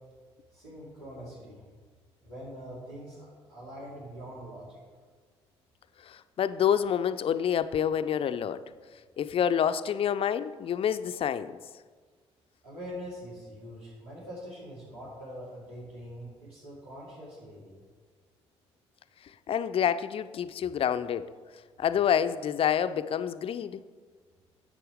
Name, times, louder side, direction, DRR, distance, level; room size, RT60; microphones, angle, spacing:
voice 1, 0.5-1.6 2.2-4.8 12.6-17.8, equal, 75° right, 3.3 m, -43 dB
voice 2, 6.0-8.6 9.2-11.6 19.2-21.3 21.8-23.8, left 9 dB, 40° left, 0.5 m, -28 dB
11.0 x 8.4 x 3.6 m
figure-of-eight pair, 45°, 14 cm